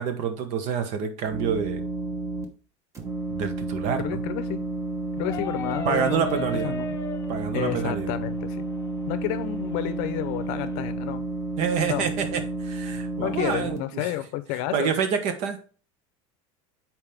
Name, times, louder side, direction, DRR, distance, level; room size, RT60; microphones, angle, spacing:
voice 1, 0.0-1.8 3.3-4.2 5.8-6.7 7.3-8.2 11.6-14.1 14.7-15.6, right 7 dB, 50° right, 8 dB, 1.0 m, -27 dB
sound 1, 1.3-2.4 2.9-13.8, right 3 dB, 20° right, 1.0 m, -31 dB
voice 2, 4.0-4.6 5.2-6.9 7.5-8.6 9.1-11.2 11.9-12.1 13.2-14.9, left 14 dB, 55° left, 12 dB, 0.7 m, -31 dB
sound 2, 5.2-10.8, left 3 dB, 20° left, 0.7 m, -38 dB
7.3 x 4.5 x 3.5 m, 0.40 s
supercardioid pair, 150°, 15 cm